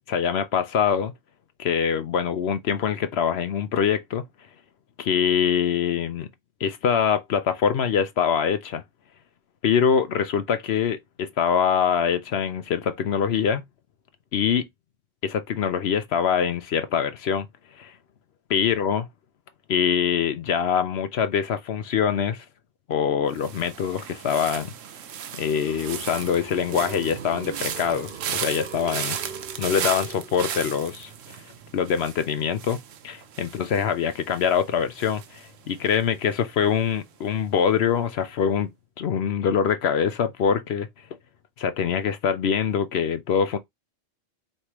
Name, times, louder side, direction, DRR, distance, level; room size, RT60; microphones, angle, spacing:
voice 1, 0.1-1.1 1.6-4.2 5.0-6.3 6.6-8.8 9.6-13.6 14.3-14.7 15.2-17.5 17.8-17.9 18.5-19.1 19.7-22.4 22.9-24.7 25.3-29.2 29.6-31.4 31.7-32.8 33.0-38.7 39.0-40.9 41.6-43.6, left 7 dB, 65° left, 0.8 m, -24 dB
sound 1, 23.3-36.4 36.6-37.1, right 8 dB, 85° right, 1.1 m, -36 dB
sound 2, 25.0-30.9, right 7 dB, 55° right, 0.7 m, -41 dB
4.7 x 3.3 x 2.9 m
omnidirectional pair, 1.3 m